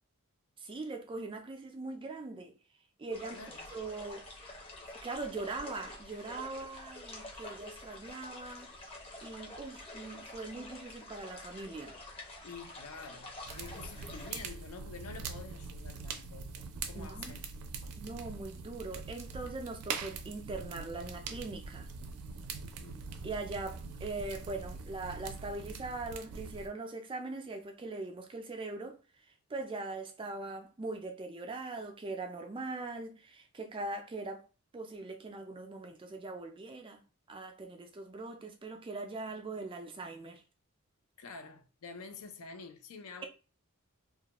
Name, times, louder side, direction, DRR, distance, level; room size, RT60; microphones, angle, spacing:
voice 1, 0.6-2.5 3.0-3.4 3.7-4.5 5.0-8.9 9.2-12.0 16.9-17.4 18.0-21.9 23.2-29.0 29.5-34.5 34.7-37.0 37.3-40.4, right 3 dB, 25° right, 0.4 m, -41 dB
sound 1, 3.1-14.3, left 2 dB, 25° left, 0.6 m, -48 dB
voice 2, 3.3-3.7 12.4-17.4 17.8-18.0 22.6-23.0 41.2-43.3, left 4 dB, 75° left, 0.5 m, -48 dB
sound 2, 13.4-26.7, right 4 dB, 85° right, 0.4 m, -43 dB
2.3 x 2.1 x 2.9 m
head